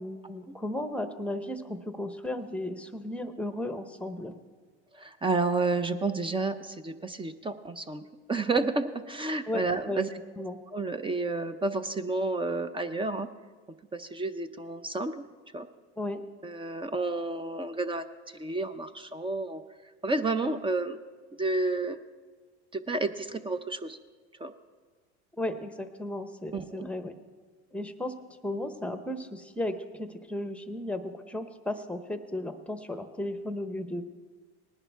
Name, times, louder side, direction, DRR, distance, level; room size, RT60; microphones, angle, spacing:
voice 1, 0.0-4.4 9.5-10.0 10.4-10.6 16.0-16.2 25.4-27.2 27.7-28.1 28.4-34.1, left 1 dB, 5° left, 9 dB, 0.8 m, -35 dB
voice 2, 4.9-8.0 8.3-10.1 10.7-13.3 13.9-15.1 15.5-15.7 16.4-18.0 18.3-19.6 20.0-21.0 21.4-22.0 22.7-24.0 24.4-24.5 26.5-26.9, right 3 dB, 15° right, 11 dB, 0.5 m, -30 dB
19.0 x 10.5 x 3.4 m, 1.5 s
supercardioid pair, 115°, 33 cm